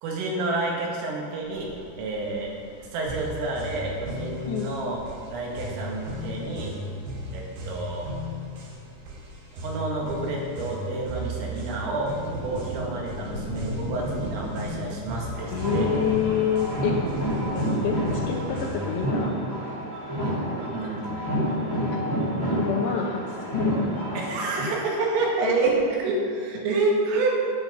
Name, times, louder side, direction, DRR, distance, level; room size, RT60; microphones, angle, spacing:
voice 1, 0.0-1.7 2.0-2.5 2.9-5.0 5.3-6.7 7.3-8.1 9.5-12.1 12.4-15.9 20.3-21.3 22.5-22.6 24.2-27.3, right 3 dB, 85° right, -2 dB, 4.7 m, -29 dB
sound 1, 1.4-19.1, equal, 50° right, 3.6 m, -40 dB
sound 2, 3.1-19.1, left 1 dB, 65° right, 4.1 m, -36 dB
sound 3, 15.3-24.7, right 1 dB, 30° right, 1.6 m, -28 dB
voice 2, 15.5-16.9 17.5-19.4 21.9-22.0 22.6-23.9, left 8 dB, 80° left, 0 dB, 2.5 m, -27 dB
10.5 x 9.5 x 7.0 m, 2.4 s
omnidirectional pair, 5.8 m